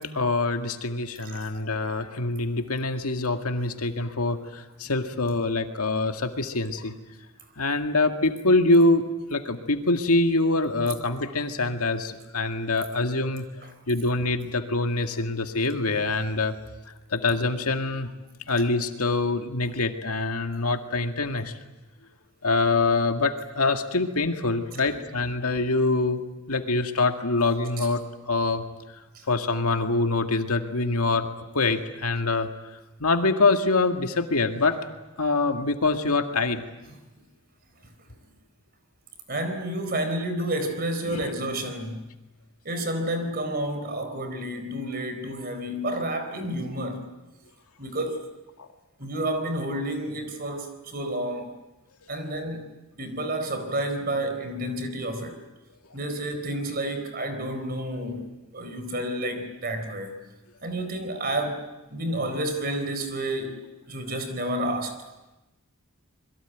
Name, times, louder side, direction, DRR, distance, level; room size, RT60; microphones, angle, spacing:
voice 1, 0.0-6.9 7.6-9.0 9.3-13.5 13.9-16.5 17.1-18.1 18.5-21.5 22.4-26.2 26.5-28.6 29.3-32.5 33.0-34.8 35.2-36.6 41.0-41.3 48.6-48.7, left 3 dB, 85° left, 2.0 m, -25 dB
voice 2, 39.3-42.1 42.6-47.1 47.8-48.3 49.0-51.5 52.1-52.7 53.0-55.4 55.9-60.1 60.6-63.6 63.9-65.0, right 1 dB, 40° right, 4.1 m, -30 dB
26.5 x 22.0 x 9.2 m
head